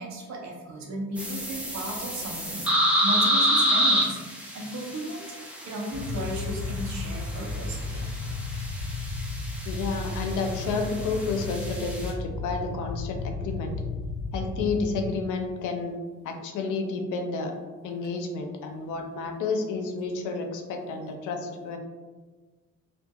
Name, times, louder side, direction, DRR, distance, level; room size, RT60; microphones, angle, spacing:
voice 1, 0.0-5.2 5.7-8.2, right 1 dB, 65° right, -1 dB, 0.7 m, -35 dB
sound 1, 1.2-12.1, equal, 5° right, 0.5 m, -29 dB
sound 2, 5.9-15.1, left 3 dB, 40° right, 1.3 m, -34 dB
voice 2, 9.7-13.7 14.3-15.9 16.2-17.5 17.8-21.8, left 4 dB, 85° left, 4 dB, 0.5 m, -30 dB
2.7 x 2.5 x 2.3 m, 1.4 s
cardioid pair, 90°, 30 cm